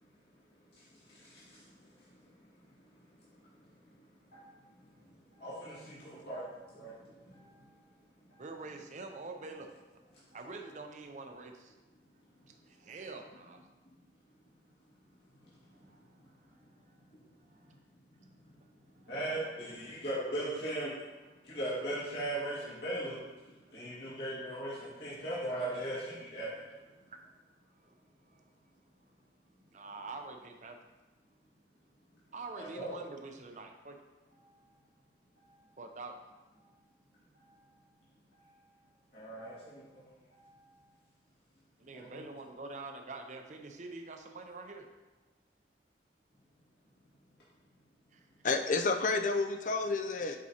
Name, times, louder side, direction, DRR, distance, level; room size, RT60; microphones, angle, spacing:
voice 1, 1.1-1.6 4.3-4.7 5.3-7.0 7.3-7.7 8.3-8.4 19.1-20.9 21.4-23.2 23.7-26.6 32.6-32.9 35.4-35.6 37.3-37.6 38.3-38.6 39.1-40.7 41.9-42.2, right 1 dB, 65° left, -9 dB, 2.0 m, -39 dB
voice 2, 8.4-9.7 10.3-11.7 12.5-13.7 15.7-16.0 16.4-17.0 17.4-17.7 19.0-19.1 19.7-20.0 21.2-21.6 23.6-24.2 25.1-25.3 26.9-27.2 27.7-28.5 29.7-30.8 32.3-34.0 35.8-36.2 41.8-44.9 48.1-48.2, right 3 dB, 40° right, 4 dB, 0.6 m, -47 dB
voice 3, 48.4-50.4, left 3 dB, 45° left, 6 dB, 0.4 m, -30 dB
7.3 x 4.6 x 2.8 m, 1.2 s
head